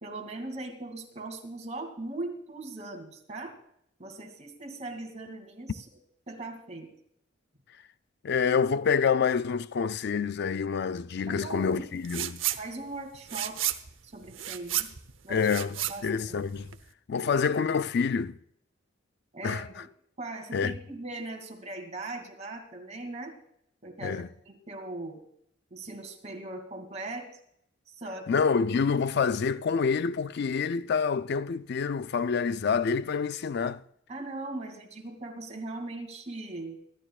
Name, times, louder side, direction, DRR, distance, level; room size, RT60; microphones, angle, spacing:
voice 1, 0.0-3.5 4.0-5.9 6.3-6.9 11.3-11.9 12.6-13.6 14.0-14.9 15.2-15.5 15.9-16.5 17.2-17.3 19.3-19.9 20.2-23.3 23.8-25.2 25.7-27.3 28.0-28.3 34.1-36.8, right 2 dB, 35° right, 2.6 m, -39 dB
voice 2, 8.2-12.4 15.3-15.8 16.0-16.7 17.1-18.4 19.4-19.6 20.5-20.7 24.0-24.3 28.3-33.8, left 5 dB, 60° left, 0.4 m, -27 dB
sound 1, 12.0-12.6 12.9-16.9, right 12 dB, 85° right, 0.8 m, -32 dB
23.5 x 12.0 x 2.4 m
head